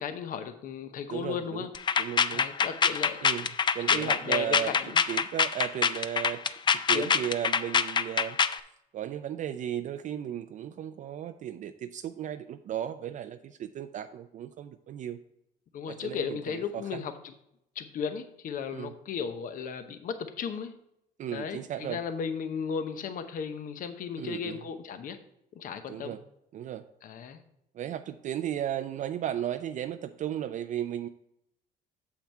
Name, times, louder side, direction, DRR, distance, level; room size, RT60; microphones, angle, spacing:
voice 1, 0.0-1.7 2.3-3.2 3.9-5.0 6.9-7.1 15.7-17.3 17.8-20.7 21.3-25.2 25.5-26.2 27.0-27.4, left 7 dB, 55° left, 9 dB, 0.7 m, -35 dB
voice 2, 1.1-1.7 2.0-2.5 3.2-3.5 3.7-4.7 5.1-6.4 6.7-8.4 8.9-15.2 15.9-17.0 18.7-18.9 21.2-22.0 24.2-24.6 25.9-26.2 26.5-26.8 27.7-31.1, right 10 dB, 50° right, 9 dB, 0.4 m, -35 dB
sound 1, 1.7-8.6, left 6 dB, 25° left, 0.4 m, -25 dB
7.4 x 5.8 x 4.4 m, 0.80 s
cardioid pair, 110°, 17 cm